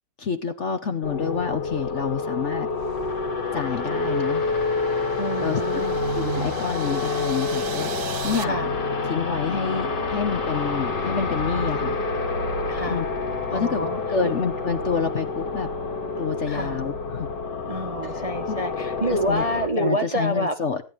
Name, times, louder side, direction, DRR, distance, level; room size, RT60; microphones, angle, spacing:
voice 1, 0.2-2.7 3.5-4.5 5.4-5.8 6.2-8.5 9.0-12.0 12.9-13.1 13.5-15.7 16.2-17.3 18.0-18.6 19.1-19.4 19.8-20.8, left 6 dB, 50° left, 8 dB, 1.0 m, -28 dB
sound 1, 1.0-19.7, left 3 dB, 65° left, 2.3 m, -28 dB
sound 2, 2.7-8.2, right 5 dB, 60° right, 0.6 m, -38 dB
sound 3, 4.3-8.4, right 10 dB, 80° right, 1.6 m, -40 dB
voice 2, 5.2-6.0 8.4-8.7 12.7-13.0 13.5-14.3 16.5-16.8 17.7-20.5, right 1 dB, 30° right, 6 dB, 0.7 m, -28 dB
16.5 x 10.0 x 3.2 m, 0.31 s
omnidirectional pair, 2.0 m